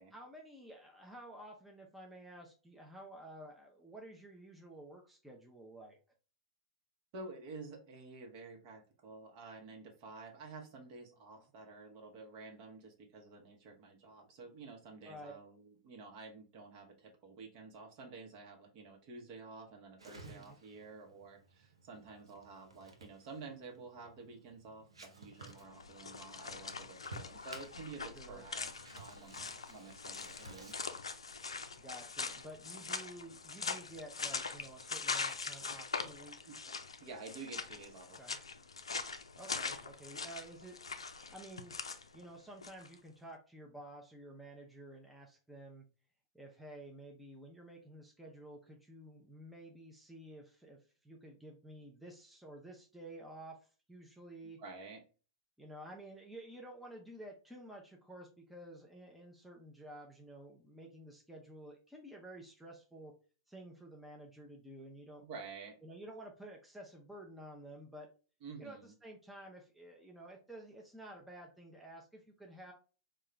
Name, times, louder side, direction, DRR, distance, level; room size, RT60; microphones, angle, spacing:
voice 1, 0.1-6.0 11.4-11.5 15.0-15.3 20.2-20.6 28.1-28.4 31.8-36.5 38.2-38.4 39.4-40.8 41.3-41.8 42.1-45.8 46.3-53.6 53.9-54.6 55.6-63.1 63.5-65.2 65.8-68.1 68.6-72.7, right 1 dB, 5° right, 0 dB, 0.6 m, -52 dB
voice 2, 7.1-30.7 36.6-36.7 37.0-38.2 54.6-55.0 65.2-65.8 68.4-68.9, right 4 dB, 50° right, 2 dB, 1.0 m, -50 dB
sound 1, 20.0-30.7, right 3 dB, 90° right, 0.7 m, -56 dB
sound 2, 25.3-42.9, left 4 dB, 90° left, 0.4 m, -42 dB
3.7 x 2.4 x 3.2 m, 0.36 s
hypercardioid pair, 105°, 3 cm